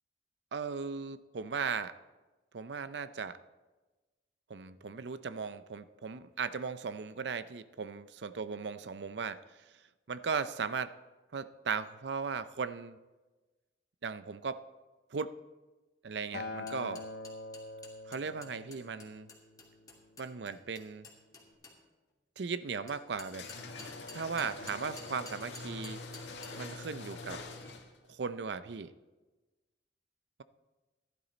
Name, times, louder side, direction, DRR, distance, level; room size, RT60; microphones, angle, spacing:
voice 1, 0.5-1.9 2.5-3.4 4.5-9.4 10.1-10.9 11.3-13.0 14.0-14.6 15.1-15.3 16.0-17.0 18.1-19.3 20.2-21.1 22.4-23.5 24.2-26.0 26.5-27.4 28.1-28.9, right 5 dB, 75° right, 13 dB, 0.6 m, -37 dB
Acoustic guitar, 16.3-20.6 21.5-21.6, left 3 dB, 65° left, 1.4 m, -45 dB
sound 1, 16.7-21.8 22.9-26.5, left 3 dB, 20° left, 2.6 m, -51 dB
sound 2, 23.3-28.0, left 3 dB, 85° left, 1.7 m, -44 dB
14.5 x 12.0 x 4.0 m, 1.2 s
head